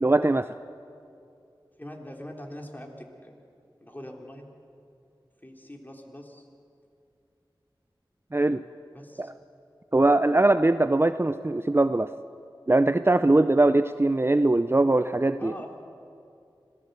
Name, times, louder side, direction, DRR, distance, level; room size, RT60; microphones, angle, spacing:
voice 1, 0.0-0.5 8.3-8.6 9.2-9.3 9.9-12.1 12.7-15.5, right 2 dB, 30° right, 11 dB, 0.5 m, -21 dB
voice 2, 1.8-3.4 3.8-4.5 5.4-6.5 8.9-9.3 15.4-15.7, left 1 dB, 20° left, 1 dB, 3.6 m, -42 dB
26.0 x 17.0 x 8.1 m, 2.5 s
wide cardioid pair, 45°, 9 cm